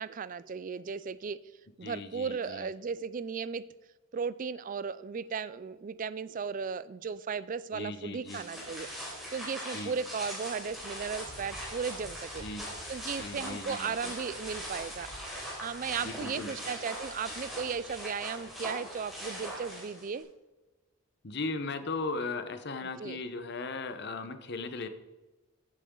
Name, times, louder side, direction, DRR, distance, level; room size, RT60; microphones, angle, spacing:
voice 1, 0.0-1.4 1.8-3.6 4.1-12.4 12.9-15.1 15.6-20.3 23.0-23.2, right 6 dB, 40° right, 17 dB, 0.3 m, -36 dB
voice 2, 1.8-2.7 7.7-8.4 9.7-9.9 12.4-12.7 13.2-14.1 16.0-16.5 21.2-24.9, left 3 dB, 50° left, 9 dB, 1.0 m, -37 dB
sound 1, 8.3-20.2, equal, ahead, 3.8 m, -41 dB
15.0 x 8.3 x 3.8 m, 1.1 s
head